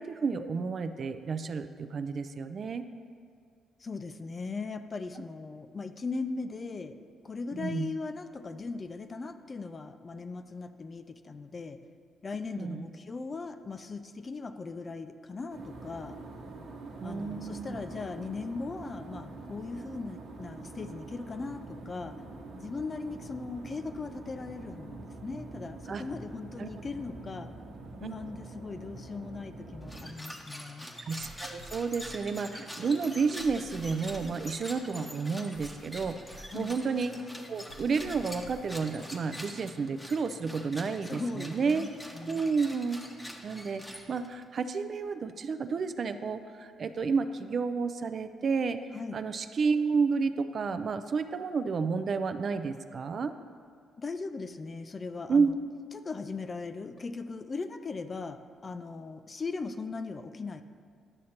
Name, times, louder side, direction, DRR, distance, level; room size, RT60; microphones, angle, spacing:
voice 1, 0.0-2.9 7.6-7.9 12.6-12.9 17.0-17.8 25.9-26.0 26.6-26.7 28.0-28.1 31.0-37.2 37.5-41.9 42.3-43.0 43.4-53.3 55.3-55.5, right 5 dB, 50° right, 10 dB, 0.3 m, -31 dB
voice 2, 3.8-6.9 7.2-11.8 12.2-16.2 17.0-22.2 22.6-27.5 28.0-30.9 36.5-36.8 41.0-42.5 48.9-49.2 54.0-55.5 55.9-60.6, left 4 dB, 35° left, 9 dB, 0.4 m, -39 dB
sound 1, 15.5-30.2, right 3 dB, 80° right, 1.0 m, -45 dB
sound 2, 29.8-44.4, equal, 10° left, 0.8 m, -45 dB
sound 3, 31.2-39.7, equal, 80° left, 0.9 m, -51 dB
11.0 x 6.3 x 2.9 m, 2.2 s
cardioid pair, 90°, 0 cm